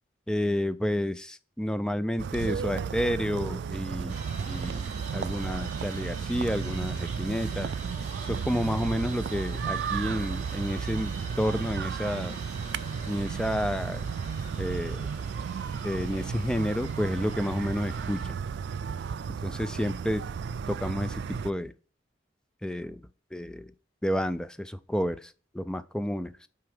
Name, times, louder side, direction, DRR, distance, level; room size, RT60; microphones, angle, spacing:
voice 1, 0.3-4.2 4.5-4.9 5.1-7.7 8.3-11.1 11.4-12.4 13.1-14.1 14.6-15.1 15.8-18.4 19.4-20.2 20.7-21.7 22.6-23.0 23.3-23.7 24.0-26.3, equal, 5° left, 0.3 m, -30 dB
sound 1, 2.2-21.5, right 6 dB, 75° right, 0.3 m, -34 dB
sound 2, 4.1-18.3, right 3 dB, 45° right, 2.5 m, -45 dB
6.1 x 4.7 x 3.4 m
head